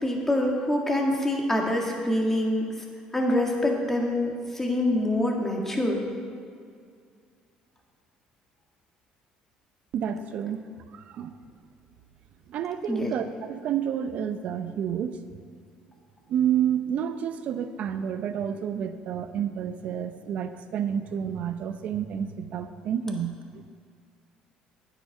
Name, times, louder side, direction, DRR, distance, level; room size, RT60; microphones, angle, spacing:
voice 1, 0.0-2.7 3.1-6.0 12.9-13.1, left 1 dB, 15° left, 0 dB, 1.8 m, -25 dB
voice 2, 9.9-10.6 10.9-11.3 12.5-15.2 16.3-23.6, right 9 dB, 60° right, 10 dB, 0.6 m, -29 dB
9.1 x 8.0 x 4.8 m, 2.2 s
supercardioid pair, 85°, 3 cm